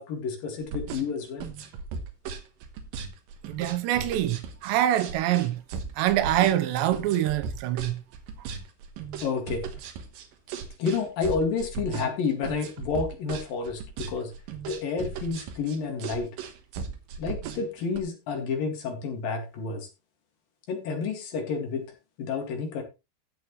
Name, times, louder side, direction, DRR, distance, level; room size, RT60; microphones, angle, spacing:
voice 1, 0.0-1.5 9.2-9.7 10.8-14.3 14.7-16.3 17.2-19.9 20.7-21.9 22.2-22.8, left 5 dB, 60° left, 3.5 m, -30 dB
sound 1, 0.6-18.0, right 5 dB, 65° right, 2.6 m, -37 dB
voice 2, 3.5-5.6 6.0-8.0, right 13 dB, 85° right, 3.1 m, -25 dB
15.5 x 6.3 x 3.1 m
omnidirectional pair, 4.9 m